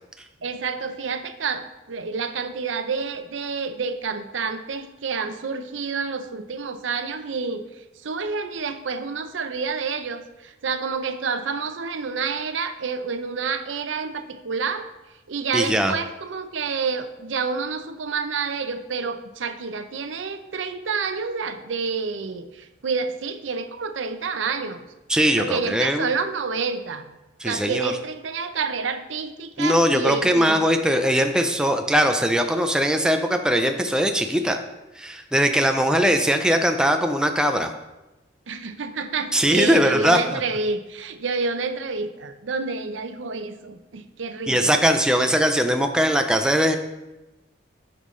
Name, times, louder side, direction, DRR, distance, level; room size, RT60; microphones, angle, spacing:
voice 1, 0.4-7.6 8.0-14.9 15.3-24.8 25.4-27.1 27.4-30.6 38.5-44.8, right 5 dB, 85° right, 8 dB, 0.6 m, -29 dB
voice 2, 15.5-15.9 25.1-26.1 27.4-27.9 29.6-34.6 35.0-37.7 39.3-40.4 44.5-46.8, equal, 5° right, 5 dB, 0.4 m, -20 dB
12.5 x 5.4 x 3.2 m, 1.0 s
head